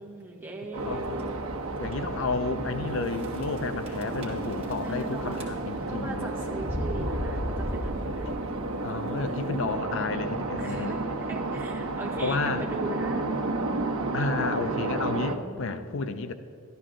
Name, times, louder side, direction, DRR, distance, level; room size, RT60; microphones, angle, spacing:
voice 1, 0.0-1.4 4.7-5.5 5.9-8.4 10.6-13.3 15.3-15.9, right 1 dB, 10° right, -4 dB, 1.4 m, -39 dB
sound 1, 0.7-15.4, right 2 dB, 75° right, 0.9 m, -32 dB
sound 2, 0.8-1.2 1.8-1.9 2.2-2.3 3.2-3.6 3.9-5.0 5.3-5.9 6.5-8.5, equal, 25° right, 1.9 m, -34 dB
voice 2, 0.9-1.2 1.8-6.3 8.2-8.4 8.8-11.0 12.2-12.7 14.1-16.3, left 4 dB, 55° left, 10 dB, 0.5 m, -31 dB
13.0 x 12.0 x 3.7 m, 2.7 s
head